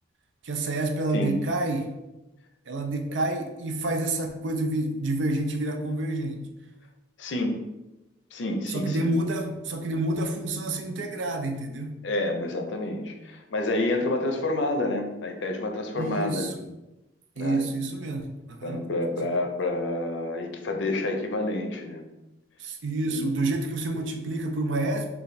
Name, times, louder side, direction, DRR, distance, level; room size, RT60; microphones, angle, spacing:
voice 1, 0.4-1.9 2.7-6.4 8.7-12.0 15.9-16.5 17.4-18.8 22.6-25.1, right 2 dB, 80° right, 5 dB, 0.5 m, -28 dB
voice 2, 7.2-7.5 8.3-9.1 12.0-16.5 17.4-17.7 18.6-22.0 23.0-23.3, left 2 dB, 75° left, 4 dB, 0.5 m, -29 dB
3.3 x 2.3 x 3.9 m, 0.99 s
head